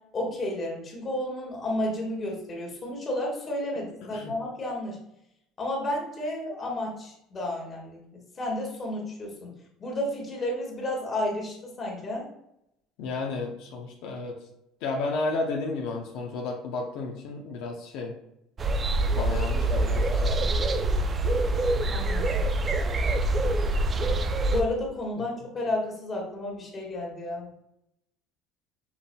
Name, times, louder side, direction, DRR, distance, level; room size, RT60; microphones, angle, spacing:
voice 1, 0.1-5.0 5.6-8.0 8.4-9.5 9.8-12.3 21.9-22.6 24.5-27.5, left 1 dB, 30° left, -2 dB, 1.6 m, -32 dB
voice 2, 4.0-4.3 13.0-14.4 14.8-18.1 19.1-20.5 25.2-25.3, left 3 dB, 75° left, 0 dB, 0.7 m, -32 dB
sound 1, 18.6-24.6, right 2 dB, 30° right, 0.4 m, -25 dB
5.7 x 4.0 x 2.2 m, 0.79 s
cardioid pair, 120°, 0 cm